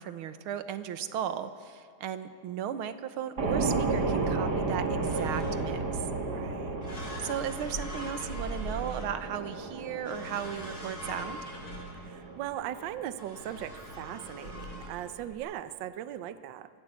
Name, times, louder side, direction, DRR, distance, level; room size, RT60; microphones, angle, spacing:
voice 1, 0.0-6.0 7.2-11.4, right 9 dB, 85° right, 12 dB, 1.8 m, -36 dB
sound 1, 3.4-15.3, right 3 dB, 50° right, 2.5 m, -34 dB
sound 2, 5.0-5.9 6.8-9.5 10.1-12.3 13.2-14.9, equal, 75° left, 8.1 m, -41 dB
voice 2, 6.2-6.8 12.0-16.7, right 11 dB, 70° right, 13 dB, 1.4 m, -39 dB
24.5 x 16.5 x 8.1 m, 2.5 s
omnidirectional pair, 2.3 m